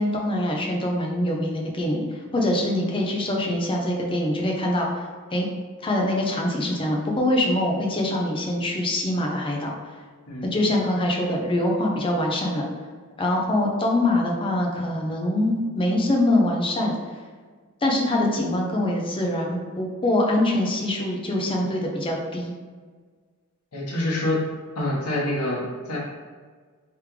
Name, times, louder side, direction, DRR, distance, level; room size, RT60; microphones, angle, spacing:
voice 1, 0.0-2.0 2.3-5.5 5.8-9.7 10.4-12.6 13.2-16.9 17.8-22.5, left 1 dB, 25° left, 0 dB, 0.6 m, -24 dB
voice 2, 23.7-24.4 24.7-26.0, left 1 dB, 85° left, -4 dB, 1.2 m, -26 dB
3.5 x 3.3 x 3.2 m, 1.5 s
head